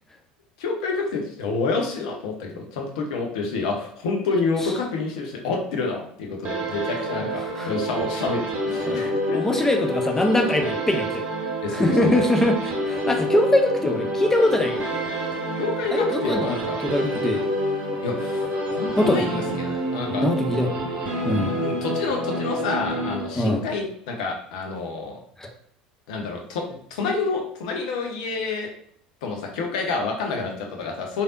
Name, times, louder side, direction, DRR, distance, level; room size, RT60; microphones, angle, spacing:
voice 1, 0.6-9.4 11.6-12.1 15.6-16.8 18.0-20.3 21.6-25.2 26.1-28.7 29.2-31.2, left 4 dB, 60° left, 2 dB, 0.7 m, -28 dB
sound 1, 6.4-23.7, right 1 dB, 35° right, 1.0 m, -28 dB
voice 2, 8.9-11.2 11.7-14.9 15.9-17.5 19.0-19.4 20.2-20.7 21.2-21.6 23.4-23.6 25.4-25.5, left 1 dB, 10° left, 3 dB, 0.5 m, -22 dB
3.2 x 2.6 x 2.5 m, 0.63 s
figure-of-eight pair, 70°, 4 cm